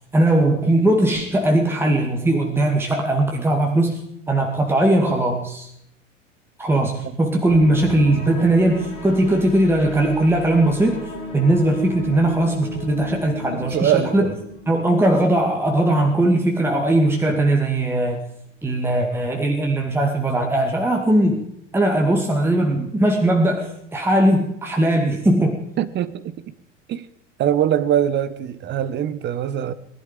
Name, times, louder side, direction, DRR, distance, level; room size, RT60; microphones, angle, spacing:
voice 1, 0.1-5.7 6.6-11.0 11.3-14.3 14.7-18.2 18.6-21.4 21.7-25.6, right 1 dB, 5° right, 2.1 m, -19 dB
sound 1, 7.5-15.7 16.0-16.3 16.8-16.9, left 1 dB, 40° left, 6.7 m, -34 dB
voice 2, 13.5-14.4 25.8-26.2 26.9-27.0 27.4-29.7, right 10 dB, 30° right, 1.1 m, -22 dB
21.0 x 11.5 x 5.1 m
figure-of-eight pair, 80°, 37 cm